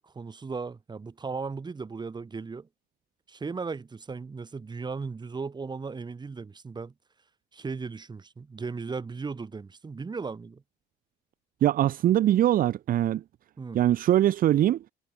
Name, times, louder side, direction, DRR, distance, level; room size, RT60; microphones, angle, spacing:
voice 1, 0.0-2.7 3.3-6.9 7.5-10.6 13.6-13.8, right 4 dB, 25° right, 5.7 m, -36 dB
voice 2, 11.6-13.2 13.7-14.8, right 12 dB, 55° right, 0.8 m, -22 dB
cardioid pair, 110°, 17 cm